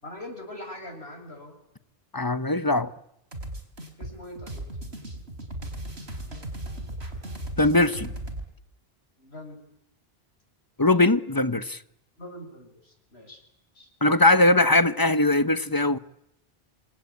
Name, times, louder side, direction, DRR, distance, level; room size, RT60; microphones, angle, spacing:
voice 1, 0.0-1.6 4.0-5.0 9.2-9.6 12.2-13.4 13.7-13.9, left 1 dB, 80° left, 7.8 m, -42 dB
voice 2, 2.1-2.9 7.6-8.1 10.8-11.8 14.0-16.0, left 2 dB, 20° left, 1.1 m, -20 dB
sound 1, 3.3-8.5, right 1 dB, 85° right, 4.6 m, -36 dB
27.5 x 24.5 x 8.7 m
omnidirectional pair, 1.1 m